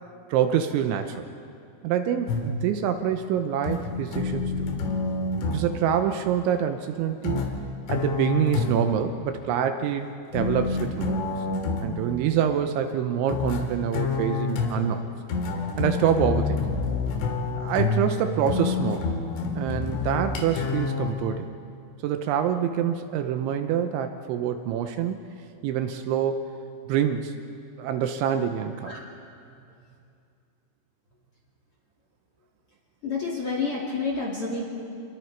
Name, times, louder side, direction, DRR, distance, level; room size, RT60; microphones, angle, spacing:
voice 1, 0.3-1.3 1.8-4.7 5.5-7.5 7.9-11.2 11.8-15.0 15.8-16.7 17.6-19.1 19.5-21.5 22.0-25.2 25.6-26.5 26.9-27.3 27.8-29.0, right 9 dB, 80° right, 7 dB, 3.0 m, -26 dB
sound 1, 2.3-2.7 3.7-5.7 7.3-9.0 10.3-12.0 13.3-21.1, left 4 dB, 75° left, 4.2 m, -28 dB
voice 2, 33.0-34.6, left 4 dB, 35° left, -3 dB, 2.5 m, -29 dB
27.5 x 22.0 x 4.7 m, 2.4 s
omnidirectional pair, 5.7 m